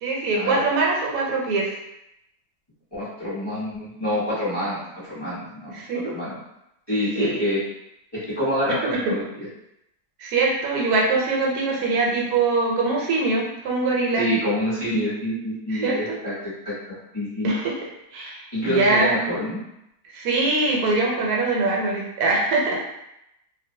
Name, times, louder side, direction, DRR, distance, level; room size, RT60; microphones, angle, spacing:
voice 1, 0.0-1.7 5.7-6.1 7.1-7.4 8.9-9.1 10.2-14.3 15.7-16.2 17.4-17.7 18.1-19.2 20.1-22.8, right 3 dB, 80° right, -2 dB, 1.1 m, -23 dB
voice 2, 2.9-5.8 6.0-6.4 6.9-7.6 8.1-9.5 14.1-17.5 18.5-19.6, equal, 20° left, -11 dB, 0.9 m, -27 dB
2.5 x 2.1 x 2.7 m, 0.84 s
omnidirectional pair, 1.6 m